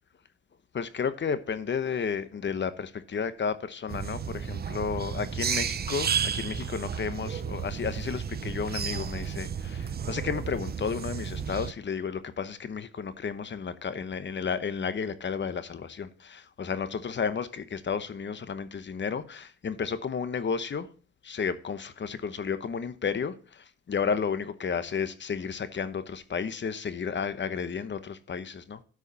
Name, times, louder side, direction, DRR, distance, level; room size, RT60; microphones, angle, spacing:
voice 1, 0.7-20.9 21.2-28.8, left 6 dB, 40° left, 1.0 m, -32 dB
sound 1, 3.9-11.7, right 7 dB, 30° right, 0.6 m, -32 dB
13.0 x 4.9 x 4.0 m
cardioid pair, 90°, 30 cm